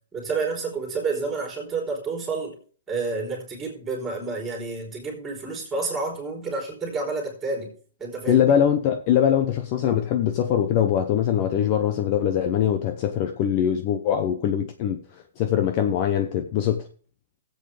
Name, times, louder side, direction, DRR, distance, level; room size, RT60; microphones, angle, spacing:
voice 1, 0.1-2.6 2.9-7.7 8.0-8.5, right 4 dB, 5° right, 3.5 m, -29 dB
voice 2, 8.3-16.9, left 9 dB, 25° left, 0.8 m, -22 dB
16.5 x 7.9 x 3.4 m
hypercardioid pair, 175°, 0 cm